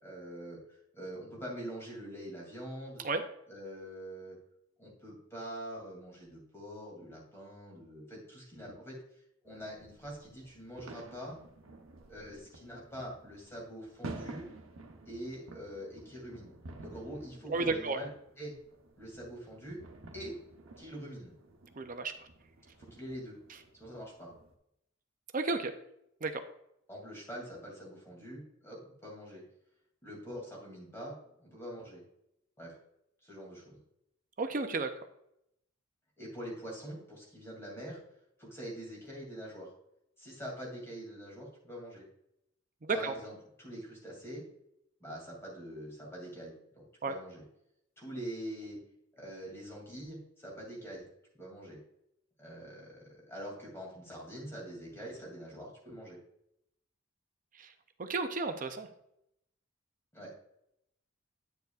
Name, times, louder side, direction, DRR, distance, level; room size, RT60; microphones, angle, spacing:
voice 1, 0.0-3.0 3.5-4.4 4.8-9.0 9.4-11.4 12.1-14.5 15.1-16.5 16.8-18.1 18.4-18.5 19.0-19.8 20.1-20.3 20.8-21.3 22.8-23.3 23.8-24.3 26.9-29.4 30.0-32.0 32.6-32.8 33.2-33.8 36.2-38.0 38.4-39.7 40.2-42.1 42.9-44.4 45.0-47.4 48.0-48.8 49.1-51.1 51.3-51.8 52.4-56.2 60.1-60.3, equal, 10° left, -3 dB, 2.7 m, -44 dB
sound 1, 9.5-24.5, right 2 dB, 80° right, 1.0 m, -51 dB
voice 2, 17.5-18.0 21.8-22.3 25.3-25.7 26.2-26.4 34.4-34.9 42.8-43.1 47.0-47.1 57.6-57.7 58.0-58.9, right 3 dB, 40° right, 8 dB, 0.5 m, -32 dB
9.3 x 6.9 x 2.4 m, 0.78 s
head